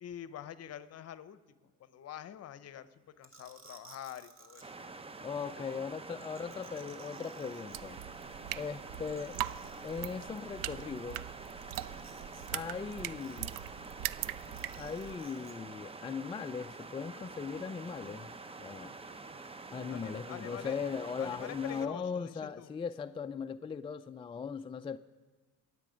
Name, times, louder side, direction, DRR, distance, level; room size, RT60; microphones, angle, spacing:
voice 1, 0.0-4.6 5.4-5.8 19.9-20.8 21.2-22.7, left 10 dB, 50° left, 14 dB, 0.8 m, -46 dB
sound 1, 3.2-4.6 6.2-8.0 8.4-8.5 8.7-8.8 9.1-10.0 11.7-12.5 12.7-13.8 14.5-15.5, right 3 dB, 40° right, 2.0 m, -58 dB
sound 2, 4.6-21.9, right 3 dB, 20° right, 0.7 m, -47 dB
voice 2, 5.2-8.0 8.6-9.4 9.8-11.2 12.5-13.5 14.8-18.9 19.7-25.0, left 6 dB, 15° left, 8 dB, 0.3 m, -39 dB
sound 3, 7.7-15.1, right 14 dB, 75° right, 0.5 m, -41 dB
23.0 x 8.4 x 5.1 m, 1.4 s
cardioid pair, 95°, 32 cm